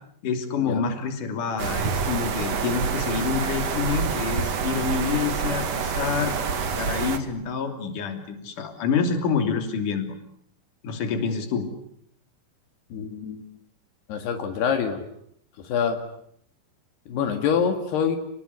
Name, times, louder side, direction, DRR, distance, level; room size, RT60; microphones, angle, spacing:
voice 1, 0.2-6.3 6.8-10.1 10.8-11.7, left 6 dB, 55° left, 6 dB, 4.4 m, -27 dB
sound 1, 1.6-7.2, right 6 dB, 50° right, 2.6 m, -27 dB
voice 2, 12.9-13.5 14.1-15.0 15.6-16.1 17.1-18.2, left 7 dB, 80° left, 5 dB, 4.2 m, -25 dB
30.0 x 20.5 x 9.6 m, 0.72 s
omnidirectional pair, 4.6 m